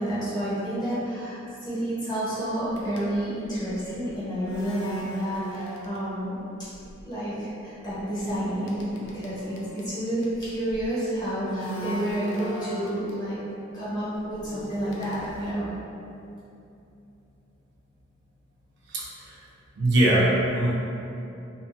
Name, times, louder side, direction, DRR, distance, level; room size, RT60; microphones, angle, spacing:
voice 1, 0.0-6.3 7.0-13.4 13.7-15.7, right 1 dB, 20° left, -11 dB, 0.9 m, -30 dB
sound 1, 2.7-6.4 6.6-7.0 7.8-10.8 11.3-13.2 13.9-15.5, equal, 90° left, 0.4 m, -39 dB
voice 2, 18.9-19.4 19.7-20.8, right 1 dB, 65° right, -5 dB, 0.5 m, -22 dB
2.7 x 2.4 x 2.3 m, 2.7 s
head